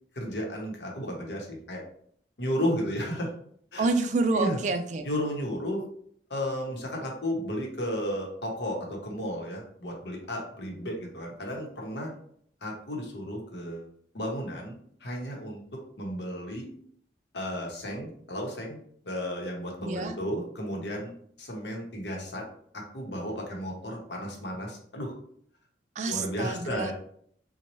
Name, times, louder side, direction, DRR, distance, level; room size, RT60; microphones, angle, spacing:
voice 1, 0.1-1.8 2.4-3.3 3.7-3.9 4.3-4.6 5.0-5.8 6.3-12.1 12.6-13.9 14.1-16.7 17.3-18.8 19.0-21.1 21.4-22.5 22.7-25.1 26.1-26.9, equal, 75° left, 0 dB, 0.9 m, -33 dB
voice 2, 3.8-5.1 19.8-20.2 26.0-26.9, right 3 dB, 40° right, 8 dB, 0.3 m, -28 dB
4.1 x 2.2 x 3.0 m, 0.64 s
head